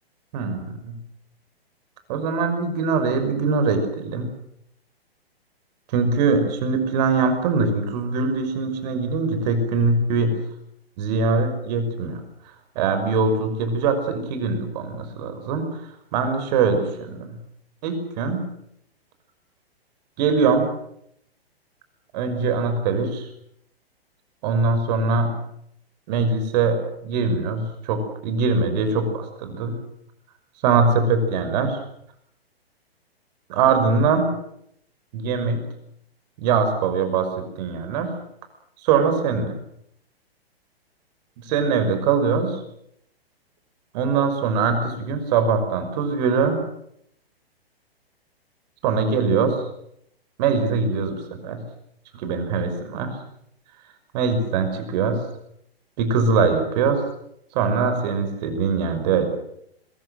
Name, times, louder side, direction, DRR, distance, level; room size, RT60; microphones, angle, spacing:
voice 1, 0.3-1.0 2.1-4.3 5.9-10.3 11.0-12.2 12.8-15.7 16.1-17.4 17.8-18.4 20.2-20.7 22.1-23.3 24.4-25.3 26.1-29.8 30.6-31.8 33.5-34.3 35.1-35.6 36.4-38.1 38.8-39.5 41.4-42.6 43.9-46.6 48.8-49.6 50.4-51.2 51.4-51.6 52.1-53.1 54.1-55.2 56.0-57.0 57.5-59.3, right 4 dB, 45° right, 8 dB, 5.8 m, -22 dB
22.5 x 21.5 x 7.8 m, 0.74 s
figure-of-eight pair, 120°, 31 cm